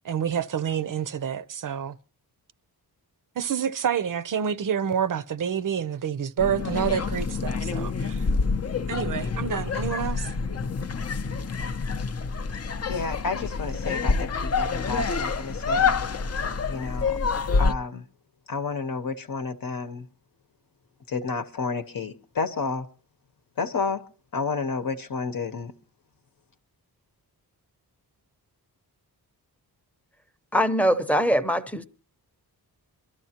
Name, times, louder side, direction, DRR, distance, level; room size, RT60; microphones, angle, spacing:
voice 1, 0.0-2.0 3.4-8.3 8.9-10.4, right 8 dB, 55° right, 0.6 m, -28 dB
sound 1, 6.4-17.7, left 4 dB, 40° left, 0.6 m, -27 dB
voice 2, 12.9-14.1 14.6-16.0 16.7-17.2 17.6-18.0 18.5-20.0 21.1-22.8 23.6-24.0 24.3-25.7, left 4 dB, 60° left, 0.9 m, -30 dB
voice 3, 30.5-31.8, equal, 5° left, 0.7 m, -22 dB
24.0 x 13.0 x 2.9 m
wide cardioid pair, 180°, 39 cm